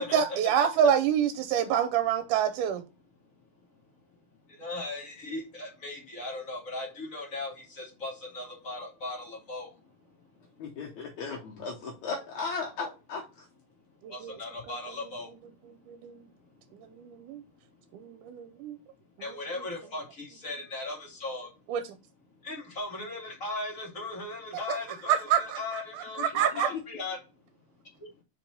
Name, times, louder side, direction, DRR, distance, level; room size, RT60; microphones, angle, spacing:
voice 1, 0.0-2.8 14.0-14.4 15.9-16.3 17.0-17.4 17.9-18.8 21.7-21.8 24.7-24.8 25.1-25.8 26.2-26.7, right 8 dB, 85° right, 2.2 m, -27 dB
voice 2, 4.5-10.0 10.3-10.4 14.1-15.4 19.2-21.5 22.4-27.2 28.0-28.1, left 2 dB, 30° left, 2.2 m, -38 dB
voice 3, 10.6-13.5 26.7-26.8, left 4 dB, 70° left, 2.3 m, -36 dB
5.1 x 4.6 x 5.3 m
omnidirectional pair, 3.6 m